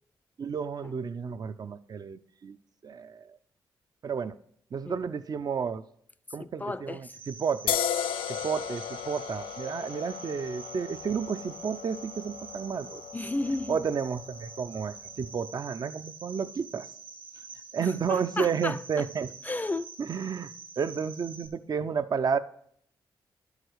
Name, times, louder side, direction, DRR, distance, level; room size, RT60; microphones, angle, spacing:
voice 1, 0.4-2.6 2.8-3.4 4.0-4.4 4.7-5.8 6.3-7.8 8.3-13.0 13.7-16.9 17.7-19.3 20.0-22.4, right 6 dB, 50° right, 0.5 m, -31 dB
voice 2, 6.4-7.1 13.1-13.8 18.1-19.1 19.4-19.9, left 2 dB, 20° left, 0.5 m, -33 dB
Cricket, 7.1-21.5, right 5 dB, 80° right, 1.7 m, -46 dB
sound 1, 7.7-15.0, left 9 dB, 85° left, 0.4 m, -36 dB
10.5 x 4.9 x 6.4 m
supercardioid pair, 60°, 9 cm